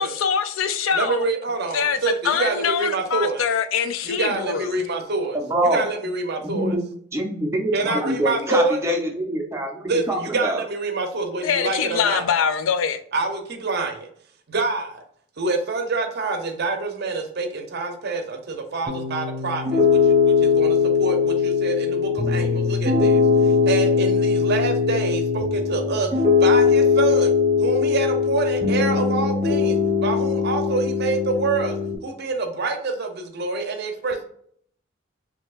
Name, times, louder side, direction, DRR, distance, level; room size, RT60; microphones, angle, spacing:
voice 1, 0.0-1.3 1.7-4.7 11.4-13.0, left 7 dB, 80° left, 0.4 m, -23 dB
voice 2, 0.9-3.4 4.0-5.4 5.7-6.8 7.7-8.8 9.8-12.2 13.1-14.1 14.5-15.0 15.4-26.1 26.4-27.3 27.6-31.8 32.0-34.3, right 3 dB, 55° right, 0.6 m, -26 dB
voice 3, 5.3-5.9 6.4-6.8 7.1-10.6, right 1 dB, 15° right, 0.7 m, -25 dB
Piano, 18.9-32.0, left 5 dB, 35° right, 1.1 m, -20 dB
4.4 x 2.8 x 2.4 m
head